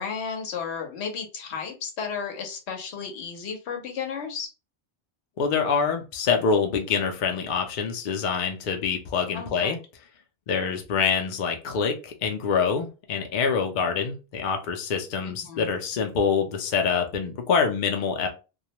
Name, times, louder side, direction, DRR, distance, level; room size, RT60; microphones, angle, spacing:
voice 1, 0.0-4.5 9.3-9.8 15.3-15.7, left 6 dB, 85° left, 0.9 m, -33 dB
voice 2, 5.4-9.8 10.5-18.3, left 6 dB, 55° left, 0.6 m, -25 dB
2.3 x 2.1 x 2.8 m
omnidirectional pair, 1.1 m